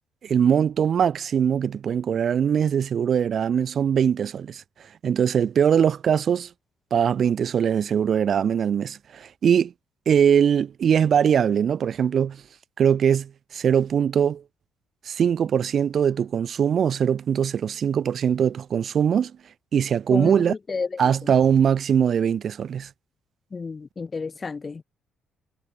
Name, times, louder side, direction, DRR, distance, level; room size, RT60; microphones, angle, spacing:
voice 1, 0.2-4.6 5.0-6.5 6.9-9.7 10.1-12.4 12.8-14.4 15.0-19.3 19.7-20.5 21.0-22.9, right 8 dB, 50° right, 0.6 m, -21 dB
voice 2, 20.1-21.3 23.5-24.8, left 4 dB, 35° left, 3.4 m, -32 dB
figure-of-eight pair, 45°, 0 cm